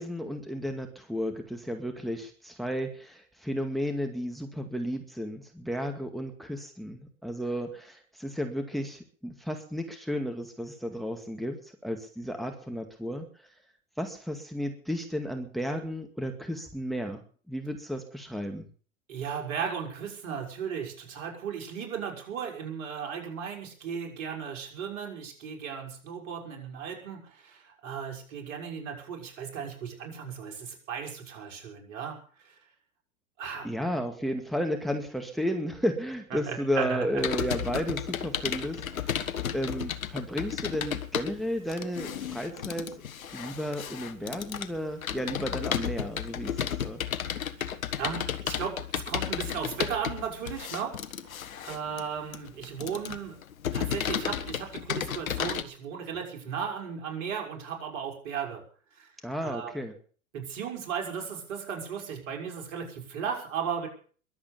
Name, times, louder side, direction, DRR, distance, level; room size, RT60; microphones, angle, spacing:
voice 1, 0.0-13.2 14.0-17.2 17.5-18.7 33.6-38.8 39.5-42.9 43.3-47.0 59.2-59.9, equal, ahead, 6 dB, 2.1 m, -33 dB
voice 2, 19.1-32.2 33.4-33.7 36.3-37.1 48.0-50.9 51.6-53.4 53.7-58.6 59.0-59.1 59.4-59.7 60.3-63.9, right 7 dB, 60° right, 2 dB, 6.0 m, -35 dB
Computer keyboard, 37.2-55.6, left 9 dB, 75° left, 1.4 m, -33 dB
22.5 x 8.3 x 6.9 m, 0.43 s
figure-of-eight pair, 95°, 41 cm